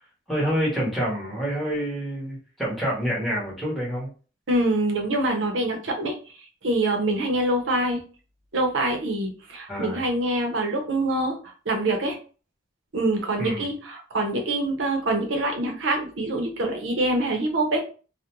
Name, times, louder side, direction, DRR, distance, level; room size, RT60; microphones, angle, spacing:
voice 1, 0.3-4.1 9.7-10.0 13.4-13.7, equal, ahead, -6 dB, 0.9 m, -27 dB
voice 2, 4.5-6.2 6.6-8.0 8.5-11.4 11.7-12.2 12.9-17.8, right 1 dB, 75° right, 3 dB, 0.7 m, -25 dB
2.4 x 2.1 x 2.9 m, 0.37 s
head